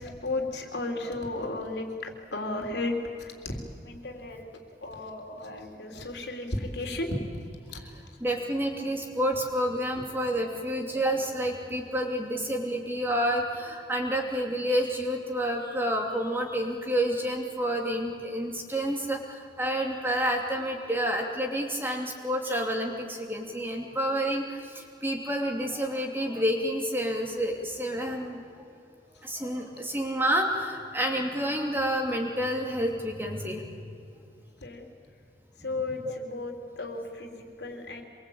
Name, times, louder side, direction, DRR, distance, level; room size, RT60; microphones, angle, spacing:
voice 1, 0.0-3.6 3.8-7.1 7.3-7.4 7.7-7.8 9.9-10.0 34.6-34.9 35.6-38.0, left 2 dB, 80° left, 3 dB, 3.5 m, -34 dB
voice 2, 7.8-28.4 29.2-33.8 35.9-36.2, equal, 10° right, 1 dB, 2.7 m, -29 dB
26.5 x 22.5 x 8.8 m, 2.6 s
head